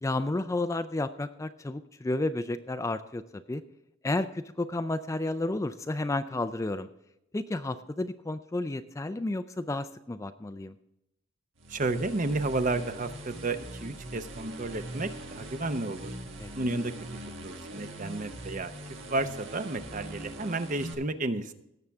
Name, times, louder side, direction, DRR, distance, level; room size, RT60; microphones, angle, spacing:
voice 1, 0.0-3.6 4.0-6.9 7.3-10.7 16.4-16.5, left 2 dB, 15° left, 10 dB, 0.3 m, -31 dB
sound 1, 11.6-20.9, right 1 dB, 65° right, 1.5 m, -42 dB
voice 2, 11.7-16.1 16.5-16.9 17.4-18.7 19.1-21.5, right 2 dB, 40° right, 10 dB, 0.7 m, -32 dB
17.5 x 7.2 x 3.5 m, 0.85 s
head